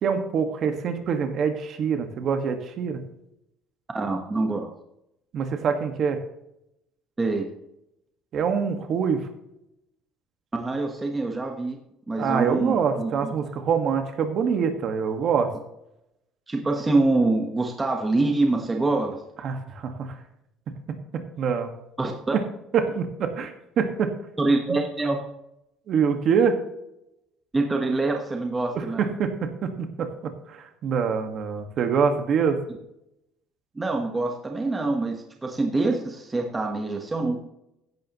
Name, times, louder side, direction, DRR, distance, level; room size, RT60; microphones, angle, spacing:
voice 1, 0.0-3.0 5.3-6.2 8.3-9.3 12.2-15.5 19.4-20.2 21.1-21.7 22.3-22.4 22.7-24.1 24.7-24.8 25.9-26.6 28.7-32.6, right 6 dB, 40° right, 6 dB, 1.6 m, -25 dB
voice 2, 3.9-4.7 7.2-7.5 10.5-11.8 12.1-13.3 16.5-19.2 22.0-22.3 24.4-25.2 27.5-29.1 33.7-37.4, right 2 dB, 15° right, 2 dB, 1.1 m, -25 dB
15.5 x 11.0 x 3.0 m, 0.83 s
cardioid pair, 160°, 0 cm